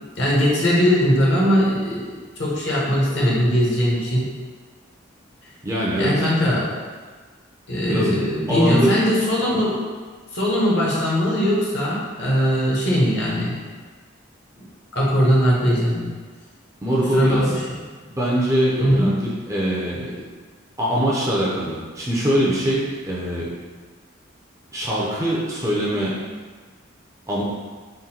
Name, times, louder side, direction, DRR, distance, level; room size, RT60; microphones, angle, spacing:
voice 1, 0.2-2.0 2.4-4.2 5.9-6.6 7.7-9.8 10.3-13.5 14.9-16.1 17.1-17.6 18.8-19.1, equal, 60° left, -5 dB, 1.1 m, -20 dB
voice 2, 5.6-6.2 7.9-8.1 8.5-9.0 16.8-17.5 18.0-20.1 20.8-23.5 24.7-26.2 27.3-27.4, equal, 15° right, -6 dB, 0.6 m, -22 dB
3.8 x 2.2 x 4.3 m, 1.5 s
head